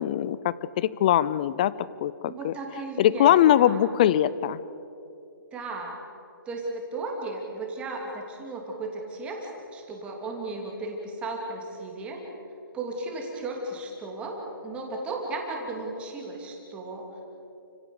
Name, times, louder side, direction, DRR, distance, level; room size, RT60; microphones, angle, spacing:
voice 1, 0.0-1.7 2.0-2.5 3.0-4.6, left 11 dB, 20° left, 18 dB, 0.4 m, -22 dB
voice 2, 2.2-3.8 5.5-5.9 6.5-12.2 12.7-17.1, right 2 dB, 10° right, 0 dB, 2.8 m, -35 dB
30.0 x 16.5 x 7.1 m, 2.8 s
hypercardioid pair, 165°, 12 cm